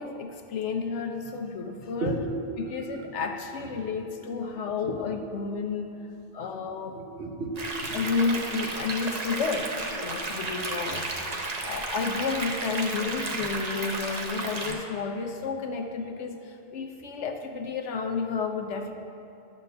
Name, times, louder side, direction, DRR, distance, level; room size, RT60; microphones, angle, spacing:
voice 1, 0.0-2.2 2.6-6.0 6.3-7.0 7.9-18.9, left 5 dB, 80° left, 5 dB, 1.1 m, -31 dB
voice 2, 2.0-3.3 3.7-3.9 4.8-5.5 6.2-6.3 6.9-8.1, right 2 dB, 55° right, 2 dB, 1.0 m, -35 dB
sound 1, 7.6-14.7, right 2 dB, 40° right, 0.8 m, -33 dB
11.0 x 4.3 x 6.7 m, 2.7 s
omnidirectional pair, 1.2 m